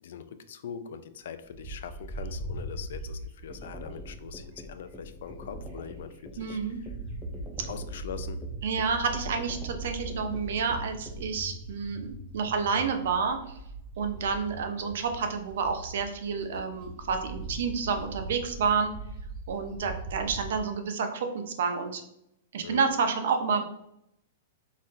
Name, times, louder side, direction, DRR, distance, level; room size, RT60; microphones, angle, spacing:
voice 1, 0.0-6.1 6.4-6.6 7.7-8.4 22.6-22.9, left 7 dB, 65° left, 10 dB, 0.4 m, -42 dB
Bird, 1.5-6.0 6.4-20.6, right 2 dB, 15° right, 1.2 m, -40 dB
sound 1, 3.5-11.2, equal, ahead, 0.4 m, -44 dB
voice 2, 6.4-6.8 8.6-13.4 14.0-18.9 19.5-22.0 22.5-23.6, right 5 dB, 65° right, 6 dB, 0.6 m, -29 dB
4.1 x 3.9 x 2.5 m, 0.79 s
supercardioid pair, 175°, 0 cm